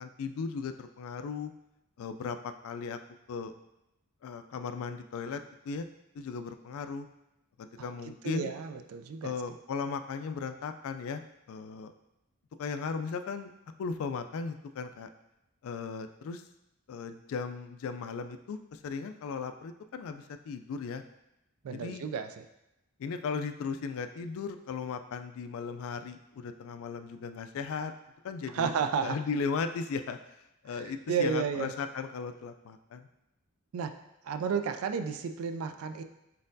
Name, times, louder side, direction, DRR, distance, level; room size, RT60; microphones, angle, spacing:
voice 1, 0.0-1.5 2.0-3.0 3.3-3.5 4.2-5.9 6.1-7.1 7.6-8.5 9.2-11.2 11.5-11.9 12.6-13.5 13.8-15.1 15.6-16.4 16.9-21.0 21.7-22.1 23.0-27.9 28.2-28.7 29.0-33.1, left 5 dB, 65° left, 9 dB, 0.3 m, -37 dB
voice 2, 8.2-9.3 21.6-22.3 28.5-29.2 31.1-31.7 33.7-33.9 34.3-36.0, right 6 dB, 70° right, 8 dB, 0.3 m, -31 dB
4.2 x 4.0 x 2.6 m, 0.89 s
head